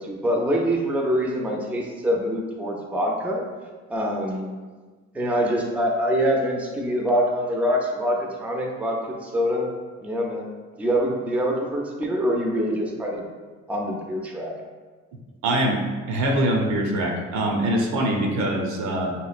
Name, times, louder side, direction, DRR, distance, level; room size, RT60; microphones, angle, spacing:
voice 1, 0.0-3.4 3.9-4.5 5.1-9.7 10.0-10.5 10.8-13.3 13.7-14.5, equal, 5° right, 0 dB, 0.4 m, -25 dB
voice 2, 15.4-15.8 16.1-19.1, right 1 dB, 70° right, 1 dB, 0.6 m, -23 dB
3.6 x 3.0 x 2.4 m, 1.4 s
cardioid pair, 90°, 30 cm